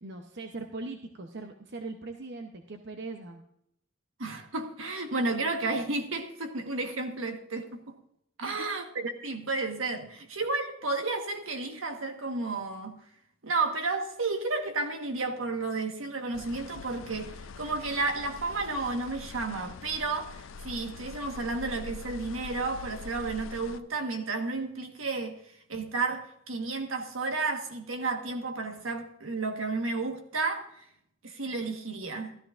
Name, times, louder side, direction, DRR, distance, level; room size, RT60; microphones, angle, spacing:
voice 1, 0.0-3.4 8.4-8.7, right 3 dB, 55° right, 0.8 m, -40 dB
voice 2, 4.2-7.9 8.4-13.0 13.4-25.4 25.7-30.7 31.2-32.3, right 3 dB, 80° right, 1.4 m, -32 dB
sound 1, 16.3-23.8, left 5 dB, 70° left, 0.5 m, -44 dB
13.5 x 13.0 x 2.5 m
head